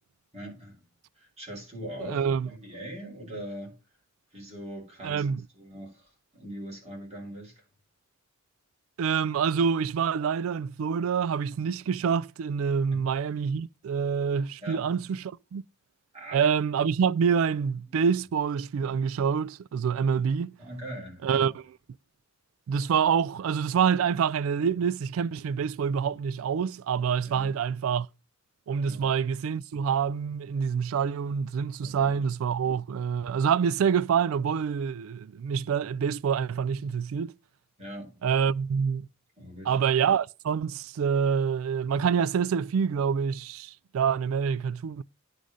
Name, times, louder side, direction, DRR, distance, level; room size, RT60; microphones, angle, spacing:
voice 1, 0.3-0.8 1.2-3.7 4.3-5.3 5.5-7.6 12.9-13.0 14.6-15.0 16.1-16.4 17.9-18.0 20.6-21.5 27.2-27.5 28.9-29.1 31.8-32.2 37.8-38.2 39.4-39.8, right 1 dB, 30° right, 4.1 m, -41 dB
voice 2, 2.0-2.5 5.0-5.4 9.0-15.2 15.5-15.6 16.3-20.6 21.2-21.5 22.7-28.1 28.7-37.3 38.2-39.1 39.7-45.0, right 7 dB, 75° right, 0.3 m, -26 dB
9.7 x 3.9 x 6.1 m
head